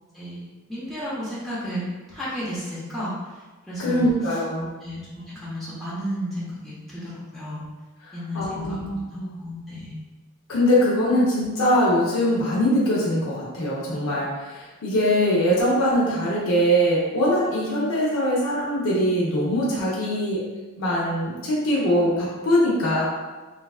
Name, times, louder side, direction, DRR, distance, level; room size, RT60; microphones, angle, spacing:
voice 1, 0.1-1.8 2.1-4.4 4.8-7.6 8.1-8.8 9.1-10.0, equal, ahead, -10 dB, 0.6 m, -33 dB
voice 2, 3.8-4.7 8.3-9.4 10.5-20.4 20.8-23.1, equal, 65° left, -6 dB, 0.6 m, -22 dB
3.1 x 2.3 x 2.3 m, 1.3 s
head